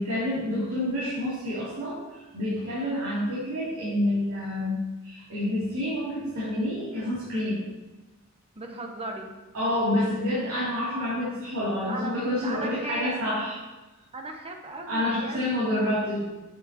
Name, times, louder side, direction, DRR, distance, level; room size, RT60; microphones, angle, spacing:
voice 1, 0.0-2.0 2.3-7.6 9.5-13.5 14.9-16.2, left 1 dB, 75° right, -11 dB, 3.0 m, -28 dB
voice 2, 8.6-9.3 11.8-13.2 14.1-15.6, right 2 dB, 25° right, 3 dB, 0.9 m, -37 dB
8.4 x 8.0 x 3.0 m, 1.1 s
head